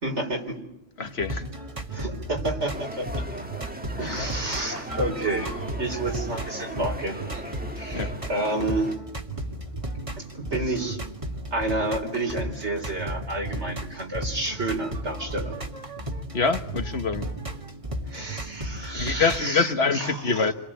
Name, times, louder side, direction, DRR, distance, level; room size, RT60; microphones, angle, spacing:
voice 1, 0.0-0.6 1.9-3.2 4.0-8.9 10.2-11.0 11.5-15.6 18.1-20.5, right 2 dB, 65° right, 4.5 m, -30 dB
voice 2, 1.0-1.4 4.0-4.3 7.9-8.1 16.3-17.3 18.9-20.5, left 4 dB, 55° left, 1.5 m, -25 dB
sound 1, 1.0-19.5, right 1 dB, 25° right, 1.9 m, -34 dB
sound 2, 2.7-9.0, right 1 dB, 5° right, 1.4 m, -39 dB
29.5 x 22.5 x 8.8 m
omnidirectional pair, 1.3 m